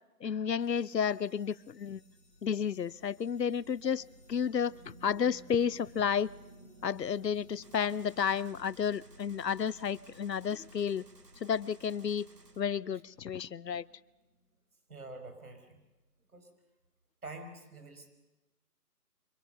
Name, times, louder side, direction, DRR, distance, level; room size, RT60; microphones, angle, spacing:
voice 1, 0.2-2.0 2.4-4.0 4.3-6.3 6.8-11.0 11.4-12.3 12.6-13.9, left 7 dB, 85° left, 22 dB, 0.8 m, -31 dB
sound 1, 0.6-9.2, left 3 dB, 10° left, 3.5 m, -70 dB
sound 2, 0.9-14.5, equal, 15° right, 3.0 m, -57 dB
Gunshot gunfire, 7.6-12.6, right 3 dB, 90° right, 4.2 m, -60 dB
voice 2, 14.9-15.8 16.3-16.5 17.2-18.1, right 2 dB, 65° right, 6 dB, 5.4 m, -47 dB
28.0 x 26.0 x 6.9 m, 1.1 s
figure-of-eight pair, 175°, 48 cm